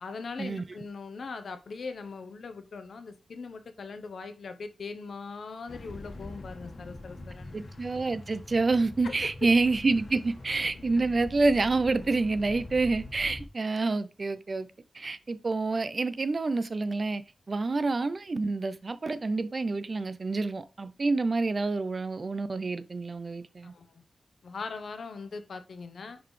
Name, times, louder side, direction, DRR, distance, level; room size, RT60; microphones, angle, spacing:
voice 1, 0.0-7.6 9.0-9.1 23.6-24.0 24.4-26.2, left 4 dB, 70° left, 0.8 m, -40 dB
sound 1, 5.7-13.5, left 2 dB, 50° left, 1.4 m, -44 dB
voice 2, 7.5-14.7 14.9-17.2 17.5-23.7, right 3 dB, 40° right, 0.4 m, -28 dB
10.0 x 4.0 x 3.2 m
wide cardioid pair, 170°, 0 cm